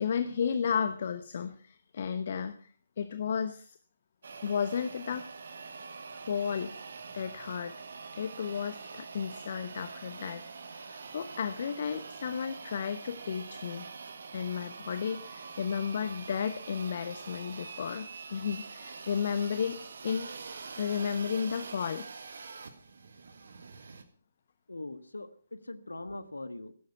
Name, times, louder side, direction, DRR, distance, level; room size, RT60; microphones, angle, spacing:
voice 1, 0.0-3.8 4.4-5.3 6.1-6.7 7.1-7.7 8.1-10.4 10.7-13.9 14.3-20.3 20.8-22.1, left 7 dB, 45° left, 12 dB, 1.0 m, -33 dB
sound 1, 4.2-24.0, right 4 dB, 55° right, 1.8 m, -45 dB
voice 2, 24.7-26.7, left 2 dB, 75° left, 13 dB, 1.5 m, -41 dB
16.0 x 12.0 x 5.8 m, 0.43 s
figure-of-eight pair, 140°, 0 cm